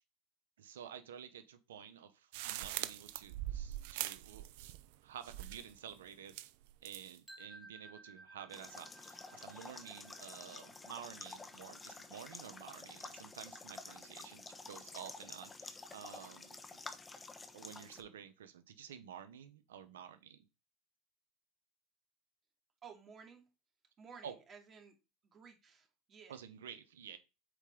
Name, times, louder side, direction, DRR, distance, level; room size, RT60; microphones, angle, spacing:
voice 1, 0.6-4.5 5.0-6.5 6.8-16.8 17.5-20.5 24.2-24.4 26.3-27.2, right 8 dB, 85° right, 11 dB, 1.0 m, -51 dB
sound 1, 2.3-5.0 5.2-5.8 6.3-7.2, right 14 dB, 70° right, 0.5 m, -42 dB
sound 2, 7.3-13.2, right 2 dB, 10° right, 1.4 m, -59 dB
sound 3, 8.5-18.0, left 3 dB, 20° left, 1.0 m, -50 dB
voice 2, 22.8-23.4 24.0-24.9 25.2-26.3, right 6 dB, 35° right, 2 dB, 2.4 m, -55 dB
8.2 x 4.4 x 3.8 m, 0.28 s
hypercardioid pair, 100°, 0 cm